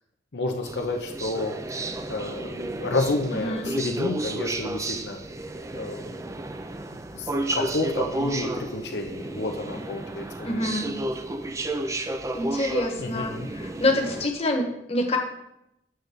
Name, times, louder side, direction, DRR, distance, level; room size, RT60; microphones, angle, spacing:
voice 1, 0.3-5.2 5.7-6.1 7.1-10.7 13.0-13.5, left 2 dB, 75° left, 2 dB, 0.8 m, -30 dB
sound 1, 0.6-14.3, right 1 dB, 15° right, 0.4 m, -32 dB
voice 2, 3.3-3.7 10.4-10.9 12.3-15.2, left 1 dB, 35° left, 1 dB, 1.2 m, -26 dB
7.8 x 4.0 x 6.7 m, 0.82 s
head